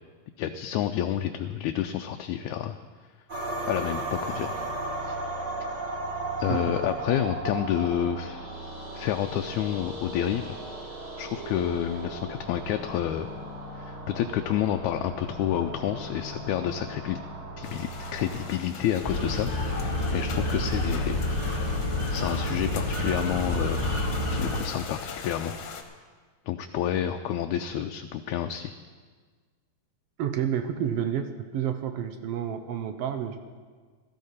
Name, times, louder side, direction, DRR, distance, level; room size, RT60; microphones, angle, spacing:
voice 1, 0.4-2.8 3.7-4.5 5.0-5.2 6.4-8.5 8.9-10.6 11.2-13.3 13.8-17.2 17.6-21.2 21.5-21.8 22.1-23.9 24.3-25.6 26.5-28.7, left 11 dB, 80° left, 5 dB, 1.9 m, -29 dB
sound 1, 3.3-18.5, right 2 dB, 45° right, 3.1 m, -36 dB
sound 2, 17.6-25.8, left 6 dB, 65° left, 2.0 m, -41 dB
sound 3, 19.0-24.6, left 1 dB, 10° right, 2.4 m, -28 dB
voice 2, 30.2-33.4, right 9 dB, 75° right, 8 dB, 1.5 m, -30 dB
16.0 x 14.0 x 4.2 m, 1.5 s
omnidirectional pair, 3.4 m